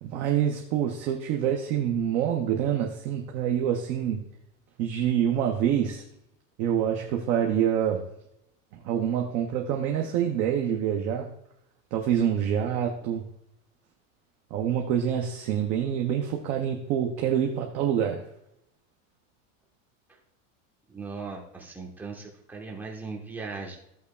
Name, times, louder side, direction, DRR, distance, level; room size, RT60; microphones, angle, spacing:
voice 1, 0.0-4.3 4.8-6.0 6.6-8.1 8.8-11.3 11.9-13.3 14.5-18.2, right 9 dB, 20° right, 2 dB, 0.3 m, -26 dB
voice 2, 20.9-23.8, right 4 dB, 5° right, -1 dB, 1.0 m, -38 dB
14.0 x 8.2 x 2.2 m, 0.78 s
supercardioid pair, 170°, 40 cm